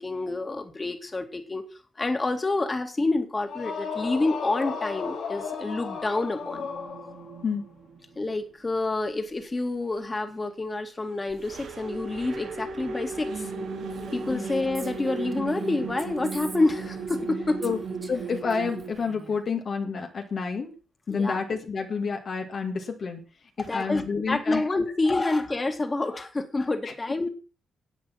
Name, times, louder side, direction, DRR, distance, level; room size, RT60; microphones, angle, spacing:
voice 1, 0.0-1.7 2.0-6.7 8.2-13.5 14.1-17.6 21.1-21.4 23.6-27.3, left 2 dB, 25° left, 6 dB, 2.3 m, -28 dB
sound 1, 3.4-7.4, left 5 dB, 75° left, 3.3 m, -34 dB
sound 2, 6.4-8.2 11.3-18.9, right 4 dB, 75° right, 2.6 m, -35 dB
Female speech woman speaking, 13.9-17.3 17.6-19.4, right 3 dB, 25° right, 2.3 m, -45 dB
voice 2, 18.1-20.7 21.1-23.2 23.6-24.6 26.9-27.0, left 5 dB, 55° left, 3 dB, 1.9 m, -29 dB
11.0 x 8.1 x 5.9 m, 0.36 s
cardioid pair, 85°, 0 cm